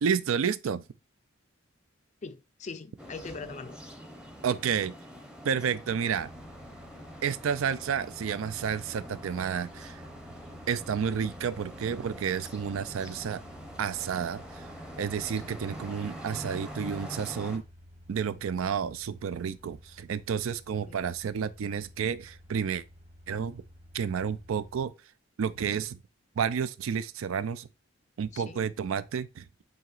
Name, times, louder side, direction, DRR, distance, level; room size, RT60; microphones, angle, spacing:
voice 1, 0.0-0.8 4.4-4.9 5.4-6.3 7.2-10.0 10.7-13.4 13.8-14.7 15.0-17.6 18.1-22.8 23.3-23.6 23.9-24.9 25.4-26.0 26.4-27.7 28.2-29.6, right 7 dB, 80° right, 0.4 m, -30 dB
voice 2, 2.2-3.8 20.9-21.0 28.3-28.7, left 4 dB, 35° left, 0.4 m, -41 dB
sound 1, 3.0-17.6, equal, 5° right, 0.7 m, -45 dB
sound 2, 6.1-24.9, left 1 dB, 30° right, 1.1 m, -52 dB
7.5 x 2.9 x 2.4 m
head